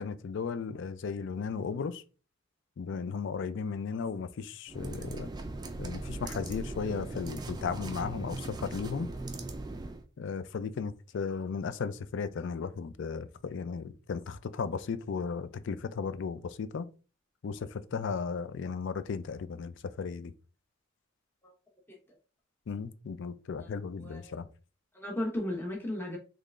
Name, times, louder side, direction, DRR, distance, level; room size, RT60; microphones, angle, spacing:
voice 1, 0.0-2.0 2.8-5.3 5.8-9.1 10.2-16.9 17.4-20.3 22.7-24.5, left 5 dB, 60° left, 0.4 m, -35 dB
sound 1, 4.7-10.0, right 2 dB, 20° right, 0.3 m, -39 dB
voice 2, 23.6-24.4 24.9-26.2, left 1 dB, 10° left, 0.9 m, -36 dB
3.7 x 3.2 x 2.4 m
head